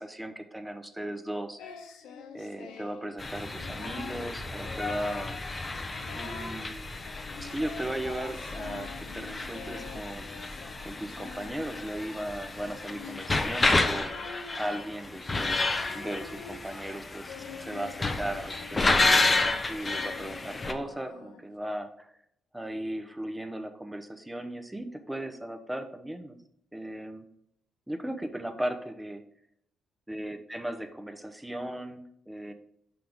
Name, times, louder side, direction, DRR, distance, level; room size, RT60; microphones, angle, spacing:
voice 1, 0.0-1.9 2.3-5.4 6.1-6.9 7.4-14.2 14.6-19.1 19.7-22.1 22.5-26.4 26.7-27.3 27.9-29.2 30.1-32.5, right 1 dB, 5° right, 7 dB, 0.8 m, -37 dB
Singing, 1.6-3.1 3.5-4.2 4.6-5.4 5.7-6.6 7.0-21.5, left 6 dB, 90° left, 0.8 m, -46 dB
sound 1, 3.2-20.7, left 3 dB, 25° left, 0.7 m, -31 dB
5.8 x 5.5 x 3.5 m, 0.70 s
cardioid pair, 90°, 0 cm